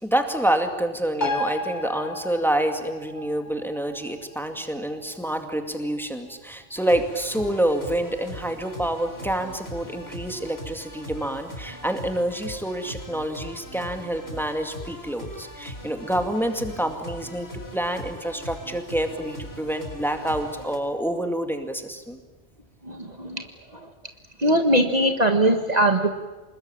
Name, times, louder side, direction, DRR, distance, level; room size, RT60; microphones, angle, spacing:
voice 1, 0.0-17.5 17.7-22.2, right 1 dB, ahead, 5 dB, 2.2 m, -27 dB
sound 1, 1.2-8.2 8.5-8.6, left 1 dB, 40° left, 2.0 m, -35 dB
sound 2, 6.7-20.8, equal, 65° left, 4.6 m, -40 dB
voice 2, 22.8-23.4 23.7-23.8 24.4-26.1, right 1 dB, 40° right, 5 dB, 1.7 m, -21 dB
26.5 x 21.0 x 9.0 m, 1.3 s
omnidirectional pair, 1.1 m